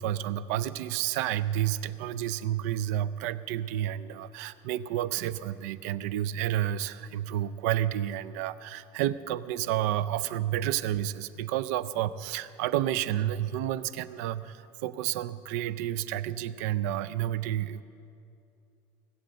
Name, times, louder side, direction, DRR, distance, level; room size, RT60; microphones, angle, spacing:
voice 1, 0.0-17.8, right 12 dB, 85° right, 15 dB, 0.5 m, -30 dB
18.0 x 7.9 x 7.7 m, 2.6 s
cardioid pair, 145°, 8 cm